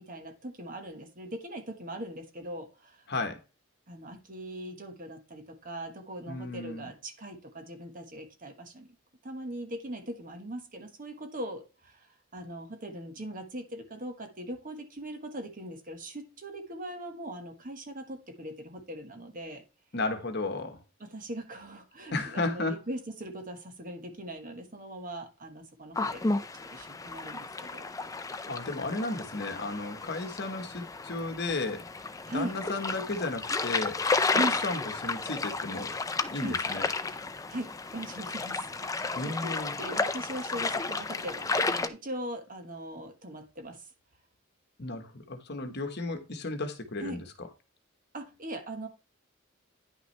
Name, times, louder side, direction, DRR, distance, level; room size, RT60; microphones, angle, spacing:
voice 1, 0.0-3.1 3.9-8.9 9.2-19.6 21.0-26.3 26.7-27.9 32.3-32.6 34.3-34.6 36.4-36.6 37.5-43.9 47.0-47.2 48.1-48.9, right 1 dB, 40° right, 1.4 m, -40 dB
voice 2, 3.1-3.4 6.3-6.9 19.9-20.8 22.1-22.8 28.5-31.8 32.3-34.0 34.3-35.9 36.3-36.9 39.2-39.7 44.8-47.5, left 2 dB, 50° left, 1.2 m, -34 dB
sound 1, 26.0-41.9, left 3 dB, 15° left, 0.4 m, -32 dB
9.9 x 5.8 x 3.3 m
head